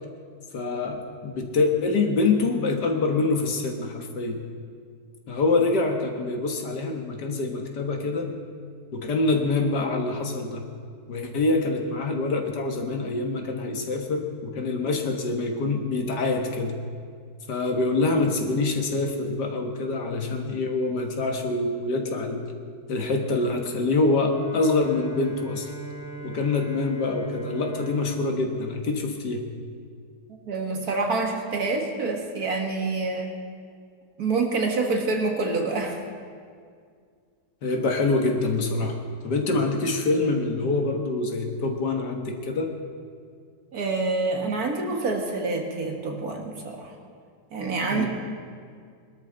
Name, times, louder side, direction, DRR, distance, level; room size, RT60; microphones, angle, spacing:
voice 1, 0.5-4.4 5.3-8.3 8.9-10.7 11.1-16.8 17.5-22.4 22.9-25.7 26.2-29.5 37.6-39.0 39.2-42.7 47.9-48.1, left 3 dB, 75° left, 3 dB, 2.0 m, -25 dB
Bowed string instrument, 24.3-29.7, right 4 dB, 30° left, 1.7 m, -40 dB
voice 2, 30.3-33.3 34.2-36.0 43.7-46.9 47.5-48.1, right 3 dB, 60° right, 2 dB, 2.0 m, -27 dB
21.5 x 12.5 x 3.9 m, 2.1 s
omnidirectional pair, 1.9 m